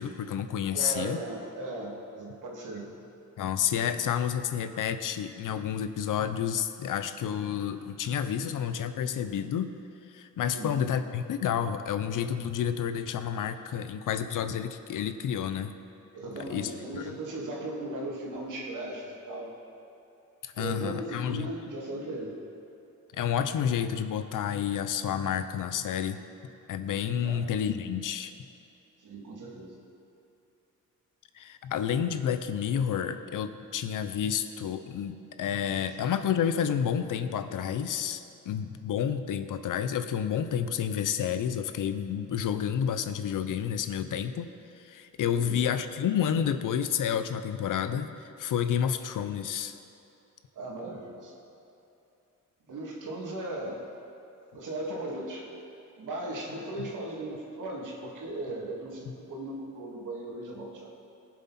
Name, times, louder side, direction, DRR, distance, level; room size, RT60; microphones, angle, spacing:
voice 1, 0.0-1.2 3.4-9.7 10.1-15.7 16.5-17.1 20.4-21.5 23.1-26.2 26.7-28.3 31.3-44.5 44.8-49.8 56.8-56.9, left 8 dB, 75° left, 10 dB, 0.7 m, -30 dB
voice 2, 0.7-3.0 10.4-10.8 16.1-19.5 20.6-22.3 27.2-27.4 29.0-29.8 45.3-45.6 50.5-51.3 52.7-53.9 54.5-55.5 56.0-60.9, right 1 dB, 75° right, -2 dB, 2.5 m, -37 dB
20.0 x 7.4 x 4.3 m, 2.8 s
cardioid pair, 125°, 32 cm